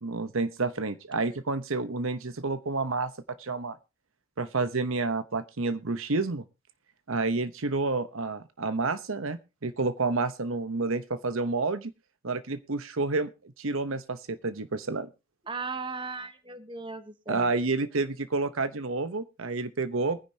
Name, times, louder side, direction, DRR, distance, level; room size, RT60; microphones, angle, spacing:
voice 1, 0.0-3.8 4.4-6.4 7.1-11.9 12.2-15.1 17.3-20.2, right 3 dB, 65° right, 12 dB, 0.9 m, -29 dB
voice 2, 15.5-17.5, right 4 dB, 20° right, 10 dB, 1.1 m, -37 dB
21.5 x 10.0 x 2.8 m, 0.28 s
head